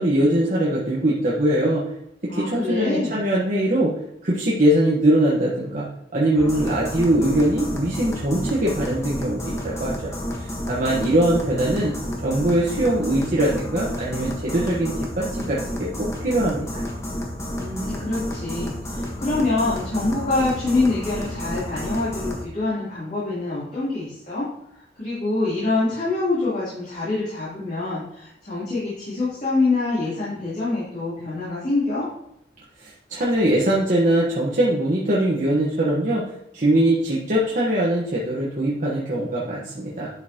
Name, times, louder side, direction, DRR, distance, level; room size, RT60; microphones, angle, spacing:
voice 1, 0.0-1.8 2.3-3.9 4.2-5.9 6.1-10.1 10.4-11.9 12.2-16.8 32.8-36.2 36.5-40.1, right 1 dB, 45° right, -5 dB, 1.3 m, -22 dB
voice 2, 2.3-3.2 17.5-24.5 25.0-32.0, left 2 dB, 45° left, -11 dB, 3.4 m, -25 dB
sound 1, 6.4-22.5, equal, 15° left, 1.4 m, -31 dB
11.0 x 5.8 x 3.0 m, 0.76 s
head